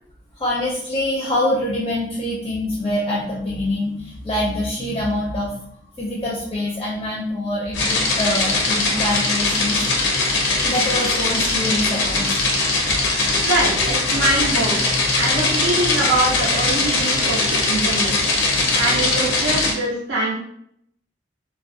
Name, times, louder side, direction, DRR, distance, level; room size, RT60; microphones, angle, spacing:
voice 1, 0.4-5.6 6.0-9.9 10.6-12.4, left 1 dB, 20° left, -5 dB, 0.4 m, -25 dB
sound 1, 7.7-19.7, left 3 dB, 85° left, 0.6 m, -20 dB
voice 2, 13.4-18.1 18.7-20.3, right 2 dB, 70° right, -7 dB, 0.5 m, -23 dB
2.4 x 2.1 x 2.5 m, 0.71 s
head